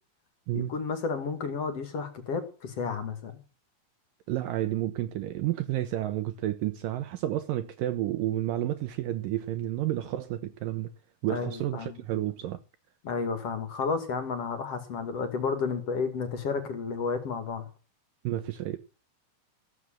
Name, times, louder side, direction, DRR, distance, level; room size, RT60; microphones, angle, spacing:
voice 1, 0.5-3.4 11.3-12.0 13.0-17.7, left 5 dB, 45° left, 2.7 m, -32 dB
voice 2, 4.3-10.9 11.2-12.6 18.2-18.8, right 13 dB, 80° right, 2.0 m, -30 dB
15.0 x 8.0 x 7.3 m
omnidirectional pair, 4.8 m